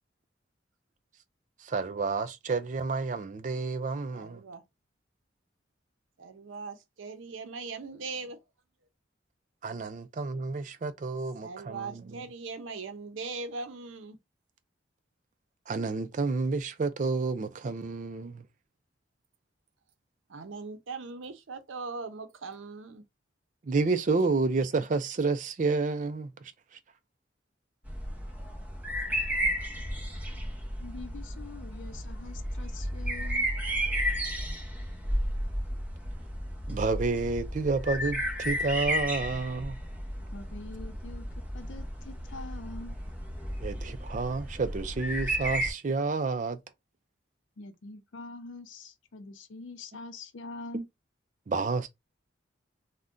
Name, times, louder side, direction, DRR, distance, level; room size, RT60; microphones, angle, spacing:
voice 1, 1.6-4.4 9.6-12.2 15.7-18.4 23.6-26.5 36.7-39.8 43.6-46.6 50.7-50.8 51.5-51.9, right 4 dB, 40° right, 0.4 m, -30 dB
voice 2, 4.1-4.6 6.2-8.4 11.4-14.2 20.3-23.0, right 4 dB, 85° right, 0.6 m, -40 dB
sound 1, 27.8-45.7, equal, 10° right, 0.7 m, -33 dB
voice 3, 30.8-33.5 40.3-41.3 41.5-43.0 47.6-50.9, left 3 dB, 75° left, 0.5 m, -44 dB
2.5 x 2.2 x 3.6 m
head